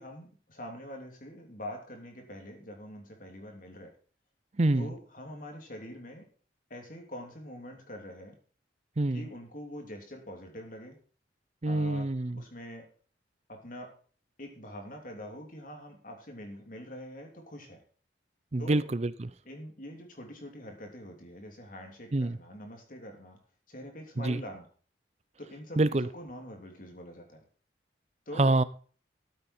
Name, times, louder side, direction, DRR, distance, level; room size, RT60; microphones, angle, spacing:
voice 1, 0.0-3.9 4.7-6.2 6.7-8.3 9.1-11.0 11.6-12.8 13.5-13.9 14.4-17.8 18.6-18.8 19.4-23.4 23.7-24.7 25.4-27.4 28.3-28.6, equal, 45° left, 3.1 m, -44 dB
voice 2, 4.6-4.9 9.0-9.2 11.6-12.4 18.5-19.3 22.1-22.4 24.2-24.4 25.8-26.1 28.4-28.6, right 2 dB, 35° right, 0.5 m, -26 dB
13.5 x 8.5 x 4.4 m
head